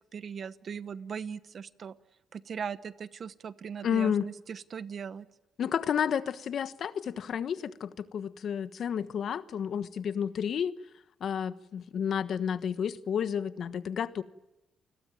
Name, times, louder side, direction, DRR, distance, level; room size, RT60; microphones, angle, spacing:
voice 1, 0.1-1.9 2.3-5.3, right 7 dB, 50° right, 1.1 m, -39 dB
voice 2, 3.8-4.3 5.6-10.7 11.2-14.2, left 8 dB, 60° left, 1.3 m, -31 dB
29.0 x 21.0 x 9.3 m
cardioid pair, 90°, 0 cm